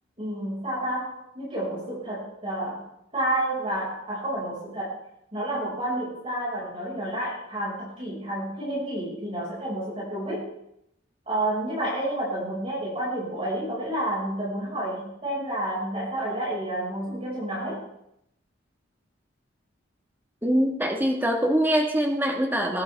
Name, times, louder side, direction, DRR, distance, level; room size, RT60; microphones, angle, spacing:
voice 1, 0.2-2.9 3.1-5.0 5.3-10.5 11.3-17.8, right 1 dB, 30° right, -7 dB, 5.5 m, -30 dB
voice 2, 20.4-22.8, equal, 10° right, 2 dB, 1.6 m, -23 dB
20.0 x 10.5 x 3.5 m, 0.79 s
head